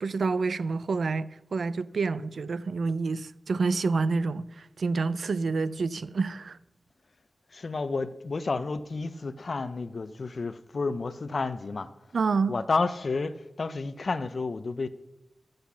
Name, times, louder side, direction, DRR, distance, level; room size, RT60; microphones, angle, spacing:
voice 1, 0.0-6.6 12.1-12.5, right 4 dB, 80° right, 0.3 m, -28 dB
voice 2, 7.5-11.9 12.5-14.9, left 3 dB, 60° left, 0.5 m, -31 dB
8.1 x 6.5 x 7.0 m
wide cardioid pair, 80°, 0 cm